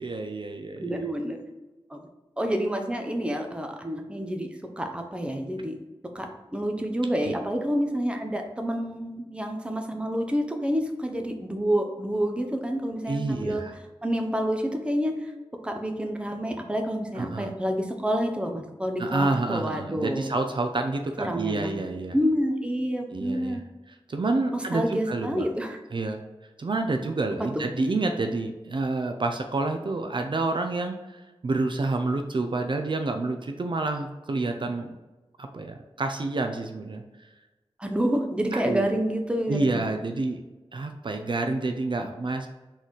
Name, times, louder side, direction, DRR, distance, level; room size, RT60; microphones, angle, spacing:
voice 1, 0.0-1.1 7.2-7.3 13.1-13.7 17.2-17.5 19.0-22.2 23.1-23.6 24.1-25.5 25.9-26.2 26.6-34.9 35.4-37.0 38.5-38.9 39.5-40.4 40.7-42.5, right 3 dB, 55° right, 5 dB, 0.4 m, -28 dB
voice 2, 0.8-1.4 1.9-2.1 2.4-5.8 6.0-13.6 14.0-15.3 15.6-20.3 21.2-21.8 22.1-23.7 24.5-25.8 27.4-27.6 37.8-39.9, equal, 10° right, 3 dB, 0.7 m, -28 dB
4.0 x 4.0 x 3.1 m, 1.1 s
wide cardioid pair, 80°, 10 cm